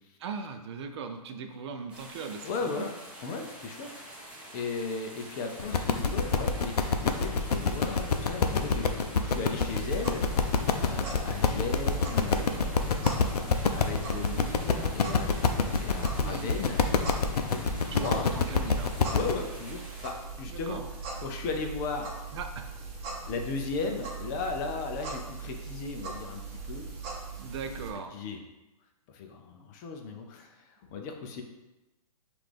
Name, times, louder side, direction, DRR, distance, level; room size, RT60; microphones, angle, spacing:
voice 1, 0.2-2.9 16.2-16.6 17.9-18.9 20.5-20.8 22.3-22.7 27.4-28.1, right 5 dB, 45° right, 6 dB, 0.4 m, -39 dB
sound 1, 1.9-20.1, right 1 dB, 5° right, 0.9 m, -47 dB
voice 2, 2.4-2.9 3.2-3.9 4.5-10.2 10.8-15.3 15.8-16.8 17.2-18.3 19.1-20.8 21.2-22.1 23.3-26.9 28.1-28.4 29.1-31.4, left 4 dB, 30° left, 3 dB, 0.5 m, -36 dB
sound 2, 5.6-19.3, left 5 dB, 80° left, 0.5 m, -27 dB
sound 3, 9.5-27.9, right 4 dB, 30° right, 0.9 m, -40 dB
5.6 x 2.5 x 3.3 m, 1.0 s
hypercardioid pair, 135°, 20 cm